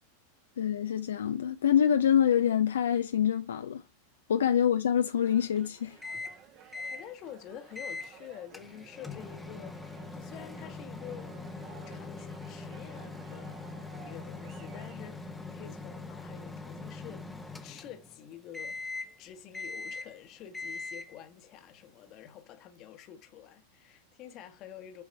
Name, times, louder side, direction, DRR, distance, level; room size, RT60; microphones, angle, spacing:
voice 1, 0.6-3.8 4.3-6.0, left 9 dB, 65° left, 0.4 m, -26 dB
sound 1, 5.2-15.0, right 7 dB, 35° right, 1.2 m, -55 dB
Microwave oven, 6.0-6.4 6.7-7.0 7.7-8.1 8.5-18.2 18.5-19.2 19.5-20.2 20.5-21.2, left 3 dB, 5° left, 0.8 m, -42 dB
voice 2, 6.6-9.9 10.1-11.5 11.8-13.6 14.0-17.3 17.6-25.0, left 10 dB, 35° left, 1.1 m, -48 dB
6.9 x 4.6 x 4.3 m
figure-of-eight pair, 90°, 0 cm